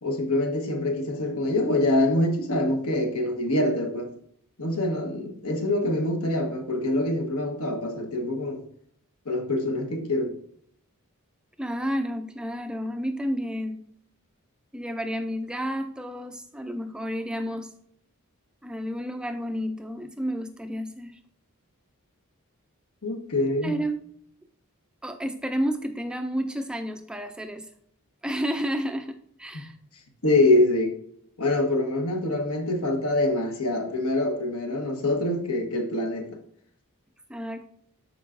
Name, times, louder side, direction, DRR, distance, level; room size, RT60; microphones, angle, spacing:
voice 1, 0.0-4.1 4.6-8.6 9.2-10.4 23.0-23.8 29.5-29.6 30.2-31.0 31.4-36.4, left 1 dB, 80° left, 1.2 m, -25 dB
voice 2, 11.6-13.9 14.7-17.7 18.6-21.2 23.6-24.0 25.0-27.7 28.2-29.8 37.3-37.7, equal, 5° right, 0.3 m, -31 dB
12.5 x 4.7 x 2.5 m
head